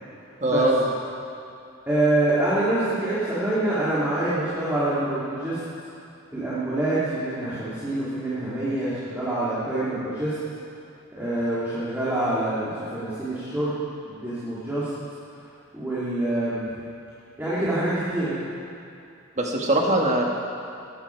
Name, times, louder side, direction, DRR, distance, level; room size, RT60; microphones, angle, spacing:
voice 1, 0.4-0.9 19.4-20.2, right 1 dB, 30° right, 0 dB, 1.6 m, -21 dB
voice 2, 1.9-5.6 6.3-10.3 11.1-13.8 14.0-14.9 15.7-16.7 17.4-18.3, right 1 dB, 10° right, -11 dB, 2.7 m, -26 dB
21.0 x 12.0 x 4.6 m, 2.6 s
head